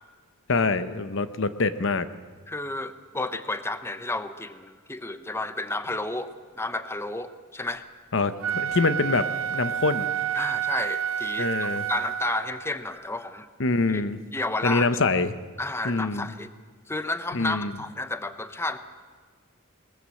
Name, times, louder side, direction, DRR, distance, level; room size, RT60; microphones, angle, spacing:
voice 1, 0.5-2.1 8.1-10.1 11.4-11.9 13.6-14.2 14.6-15.3 15.8-16.3 17.3-17.7, left 3 dB, 65° left, 12 dB, 1.0 m, -25 dB
voice 2, 2.5-7.8 10.3-13.5 13.9-14.0 14.3-14.9 15.6-16.5 16.9-18.8, left 2 dB, 10° left, 11 dB, 0.8 m, -31 dB
Wind instrument woodwind instrument, 8.4-12.7, right 9 dB, 70° right, 0.7 m, -29 dB
21.0 x 20.0 x 7.7 m, 1.5 s
head